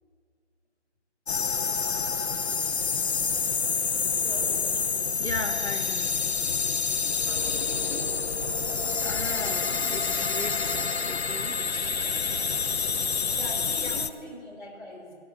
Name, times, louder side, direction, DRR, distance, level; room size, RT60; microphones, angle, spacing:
sound 1, 1.3-14.1, left 5 dB, 65° left, 0.6 m, -28 dB
voice 1, 4.2-4.6 7.2-8.1 8.4-8.5 13.3-15.1, left 1 dB, 40° left, -5 dB, 3.9 m, -42 dB
voice 2, 5.2-6.1 7.9-8.0 9.0-11.6 13.8-14.0, left 2 dB, 80° left, 5 dB, 1.9 m, -36 dB
sound 2, 7.0-8.1 8.5-10.5 10.8-12.9 13.2-13.3 14.1-14.2, equal, 15° right, 2.0 m, -52 dB
16.5 x 5.7 x 7.4 m, 2.2 s
figure-of-eight pair, 175°, 35 cm